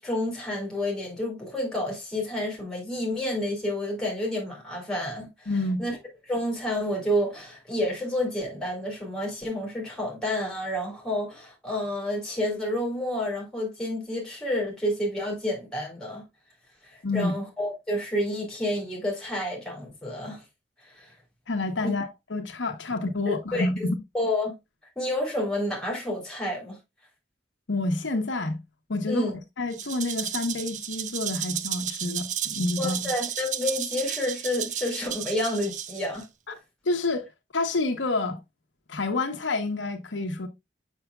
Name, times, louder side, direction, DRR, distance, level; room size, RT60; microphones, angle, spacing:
voice 1, 0.0-5.5 5.8-6.0 6.3-16.2 16.8-20.4 20.8-21.1 21.8-21.9 23.3-23.7 24.1-24.5 24.9-26.8 29.1-29.3 32.8-36.3, left 1 dB, 5° left, 3.2 m, -29 dB
voice 2, 5.5-5.8 17.0-17.3 21.5-24.0 27.7-28.6 28.9-33.0 36.5-36.6 36.8-37.2 37.5-38.4 38.9-40.5, left 2 dB, 85° left, 1.0 m, -28 dB
Rattle (instrument), 29.7-36.2, right 10 dB, 40° right, 0.5 m, -33 dB
7.0 x 6.3 x 2.3 m
head